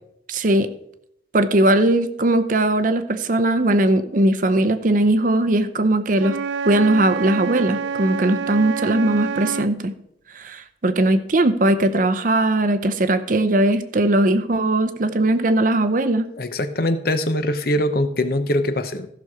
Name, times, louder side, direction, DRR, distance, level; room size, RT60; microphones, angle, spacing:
voice 1, 0.3-0.7 1.3-6.4 6.6-9.9 10.3-16.3, right 1 dB, 45° right, 11 dB, 0.7 m, -19 dB
Wind instrument woodwind instrument, 6.2-9.7, right 5 dB, 75° right, 0.3 m, -27 dB
voice 2, 16.4-19.1, left 1 dB, 55° left, 10 dB, 0.8 m, -22 dB
14.5 x 6.1 x 4.8 m, 0.75 s
head